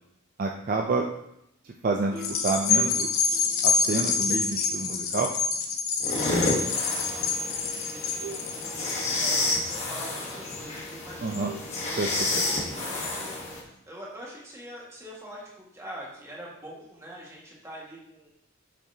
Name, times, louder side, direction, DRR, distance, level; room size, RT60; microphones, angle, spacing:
voice 1, 0.4-1.0 1.8-3.1 3.6-5.4 11.2-11.5 12.0-12.1 12.3-12.4, right 3 dB, 40° right, 2 dB, 0.4 m, -28 dB
sound 1, 2.1-5.7 7.1-7.2 8.2-8.5 8.8-9.7 11.4-11.6, right 2 dB, 90° right, 2.4 m, -43 dB
sound 2, 2.2-10.8 11.3-11.4, left 5 dB, 90° left, 0.8 m, -27 dB
sound 3, 6.0-13.6, left 2 dB, 30° left, 1.2 m, -30 dB
voice 2, 6.3-11.5 11.8-18.3, equal, 15° right, -4 dB, 1.7 m, -45 dB
6.7 x 6.4 x 2.8 m, 0.79 s
head